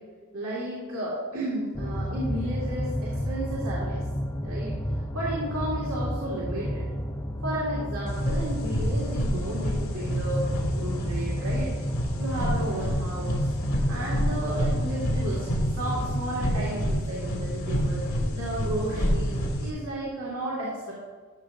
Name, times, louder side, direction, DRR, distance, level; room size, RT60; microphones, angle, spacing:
voice 1, 0.3-4.0 4.4-6.9 7.4-10.5 10.8-11.7 12.2-13.5 13.9-15.5 15.7-20.9, right 1 dB, 90° right, -6 dB, 1.9 m, -33 dB
sound 1, 1.7-16.2, equal, 15° left, 0.5 m, -32 dB
sound 2, 8.1-19.7, equal, 75° left, 1.8 m, -28 dB
13.0 x 6.4 x 2.6 m, 1.5 s
head